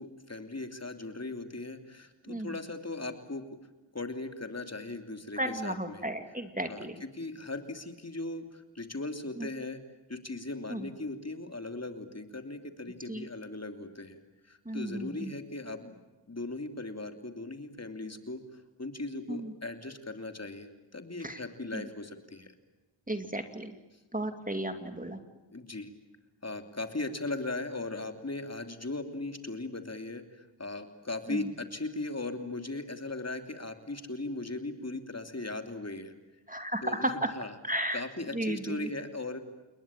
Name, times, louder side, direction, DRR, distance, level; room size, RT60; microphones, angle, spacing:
voice 1, 0.0-3.4 3.9-6.0 6.7-9.8 10.1-14.2 14.4-15.9 16.3-22.5 25.5-25.9 26.4-36.1 36.8-37.5 37.9-39.4, left 2 dB, 35° left, 6 dB, 3.1 m, -38 dB
voice 2, 5.4-7.0 9.4-9.5 10.7-10.8 13.1-13.3 14.7-15.3 19.3-19.5 21.2-21.4 21.7-21.9 23.1-23.7 24.1-25.2 31.3-31.5 36.5-37.3 37.6-38.0 38.3-38.9, right 1 dB, 15° right, 7 dB, 2.4 m, -34 dB
29.5 x 21.0 x 9.0 m, 1.1 s
wide cardioid pair, 55°, 46 cm